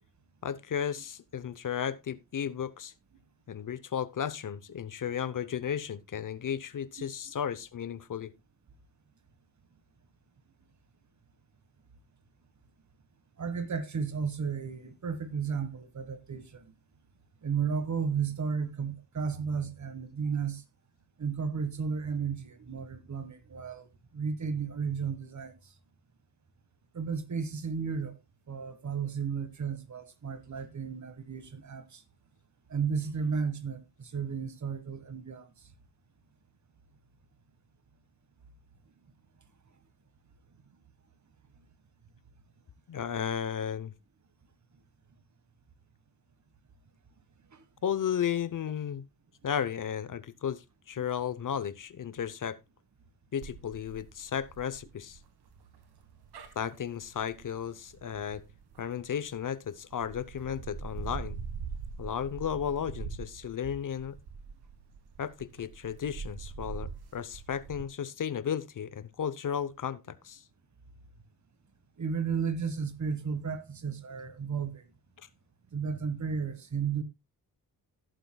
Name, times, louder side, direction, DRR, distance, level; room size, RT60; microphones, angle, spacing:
voice 1, 0.4-2.9 3.5-8.3 42.9-43.9 47.8-49.0 49.4-52.6 53.3-55.2 56.6-58.4 58.8-61.4 62.0-64.2 65.2-70.4, left 8 dB, 55° left, 0.8 m, -34 dB
voice 2, 13.4-16.6 17.4-20.6 21.2-23.9 24.1-25.5 26.9-28.2 28.5-32.0 32.7-35.5 47.5-47.6 51.0-51.1 72.0-74.8 75.7-77.0, right 6 dB, 45° right, 1.5 m, -33 dB
sound 1, 53.4-59.4 59.9-67.8, right 5 dB, 85° right, 1.9 m, -43 dB
17.0 x 7.6 x 2.3 m
cardioid pair, 85°, 38 cm